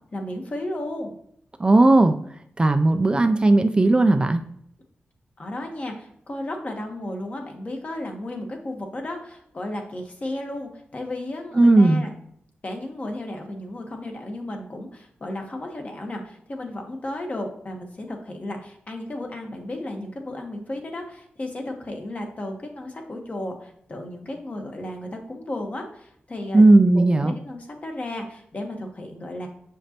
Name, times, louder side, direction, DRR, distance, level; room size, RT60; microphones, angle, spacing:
voice 1, 0.1-1.1 5.4-12.1 12.6-26.6 26.9-29.5, left 1 dB, 40° left, 2 dB, 1.2 m, -34 dB
voice 2, 1.6-2.1 2.6-4.4 11.6-12.0 26.5-27.4, right 2 dB, 25° right, 7 dB, 0.4 m, -16 dB
7.0 x 5.1 x 2.8 m, 0.69 s
wide cardioid pair, 115°, 4 cm